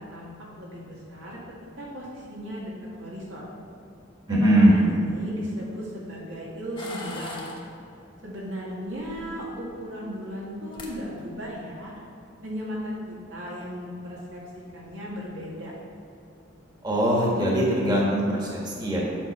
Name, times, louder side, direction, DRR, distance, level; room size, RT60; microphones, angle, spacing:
voice 1, 0.0-1.4 1.8-2.7 3.0-3.5 4.3-7.4 8.2-11.9 12.4-15.7, equal, 85° right, -5 dB, 2.0 m, -36 dB
voice 2, 4.3-4.8 16.8-19.0, equal, 20° right, -4 dB, 1.4 m, -21 dB
sound 1, 6.8-7.6 9.0-9.6 10.5-10.6 10.7-10.9 11.3-11.7, left 2 dB, 25° left, 1.1 m, -39 dB
7.7 x 6.1 x 4.7 m, 2.7 s
head